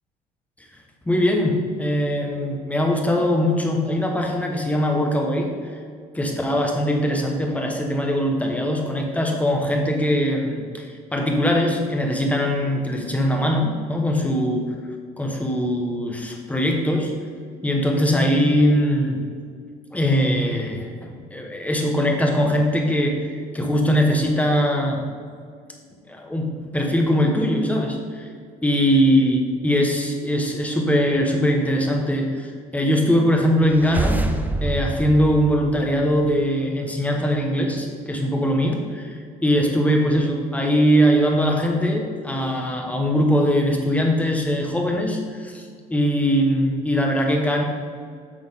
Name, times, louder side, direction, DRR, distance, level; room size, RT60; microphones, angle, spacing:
voice 1, 1.1-5.5 6.1-14.7 15.2-17.1 17.6-19.2 19.9-23.3 23.5-25.1 26.1-28.3 28.6-34.2 34.6-47.6, equal, 10° left, 2 dB, 1.2 m, -21 dB
sound 1, 33.6-36.4, right 2 dB, 10° right, 0.7 m, -27 dB
8.7 x 6.0 x 3.7 m, 2.1 s
cardioid pair, 110°, 17 cm